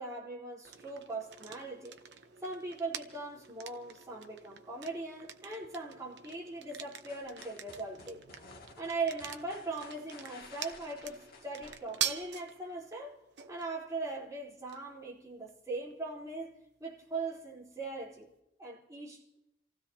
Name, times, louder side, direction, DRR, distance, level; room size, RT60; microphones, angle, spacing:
voice 1, 0.0-2.0 2.4-8.2 8.8-13.1 13.5-16.5 16.8-18.3 18.6-19.4, right 3 dB, 20° right, 3.9 m, -40 dB
sound 1, 0.6-18.4, right 9 dB, 65° right, 0.9 m, -46 dB
sound 2, 7.1-12.3, left 3 dB, 55° left, 2.2 m, -55 dB
28.5 x 16.0 x 2.8 m
head